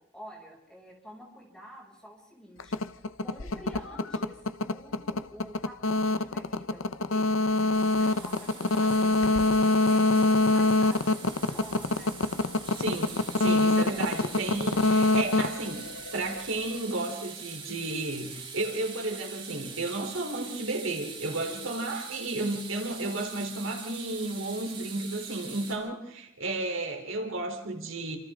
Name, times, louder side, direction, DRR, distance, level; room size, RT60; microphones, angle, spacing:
voice 1, 0.1-12.1 22.0-22.1, equal, 5° left, -2 dB, 6.5 m, -48 dB
sound 1, 2.6-16.5, left 2 dB, 85° left, 0.8 m, -25 dB
sound 2, 7.7-25.8, right 6 dB, 25° right, 6.0 m, -43 dB
voice 2, 12.8-28.2, right 2 dB, 90° right, 3 dB, 3.7 m, -33 dB
29.0 x 27.0 x 3.8 m, 0.88 s
head